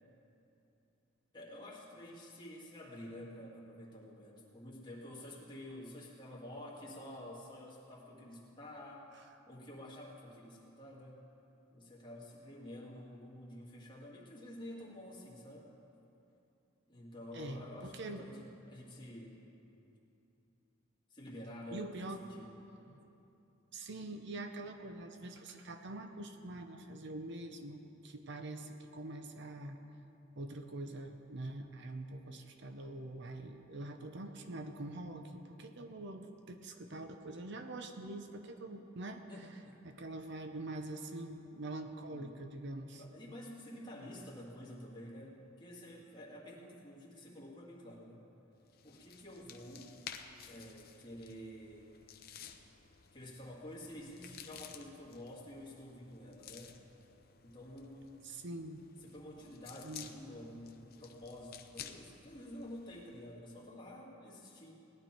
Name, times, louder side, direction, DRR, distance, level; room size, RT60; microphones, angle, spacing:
voice 1, 1.3-9.1 9.5-11.2 11.7-15.7 16.9-19.5 21.1-21.9 22.2-22.5 39.3-39.8 42.1-42.3 43.0-48.2 48.8-49.9 50.5-52.0 53.1-56.8 57.4-58.2 59.0-64.7, left 1 dB, 25° left, -5 dB, 2.1 m, -49 dB
voice 2, 17.3-18.3 21.7-22.2 22.9-23.0 23.7-29.8 30.4-39.3 39.8-43.0 58.2-58.8 59.4-59.5 59.8-60.1, right 2 dB, 60° right, 6 dB, 0.7 m, -44 dB
sound 1, 48.6-63.3, left 8 dB, 50° left, 0.7 m, -54 dB
18.5 x 10.5 x 4.5 m, 2.9 s
head